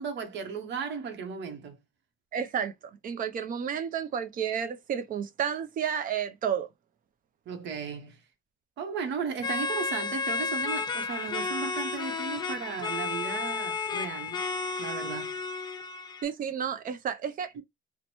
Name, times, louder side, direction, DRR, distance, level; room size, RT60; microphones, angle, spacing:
voice 1, 0.0-1.8 7.5-8.2 8.8-14.4 14.8-15.4 17.5-17.6, right 6 dB, 65° right, 0.9 m, -35 dB
voice 2, 2.3-2.7 3.0-6.7 16.2-17.5, right 8 dB, 45° right, 0.5 m, -31 dB
sound 1, 9.4-16.2, left 4 dB, 20° left, 0.4 m, -32 dB
3.0 x 2.1 x 4.1 m
cardioid pair, 165°, 20 cm